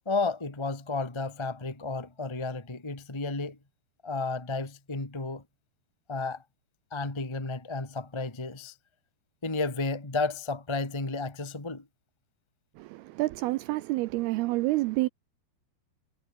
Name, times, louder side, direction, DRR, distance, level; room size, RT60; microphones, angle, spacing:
voice 1, 0.0-3.5 4.0-5.4 6.1-6.4 6.9-8.7 9.4-11.8, left 3 dB, 15° left, 0.8 m, -32 dB
voice 2, 12.8-15.1, right 19 dB, 85° right, 2.3 m, -28 dB
omnidirectional pair, 5.1 m